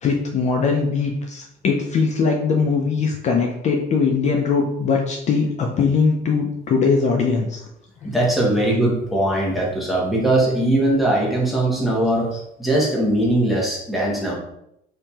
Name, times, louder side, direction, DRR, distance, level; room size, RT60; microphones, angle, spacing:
voice 1, 0.0-7.6 8.0-8.1 12.3-12.4, left 5 dB, 45° left, 1 dB, 0.4 m, -21 dB
voice 2, 8.0-12.3 12.6-14.3, right 1 dB, ahead, -4 dB, 0.9 m, -20 dB
2.9 x 2.7 x 2.3 m, 0.80 s
cardioid pair, 110°, 17 cm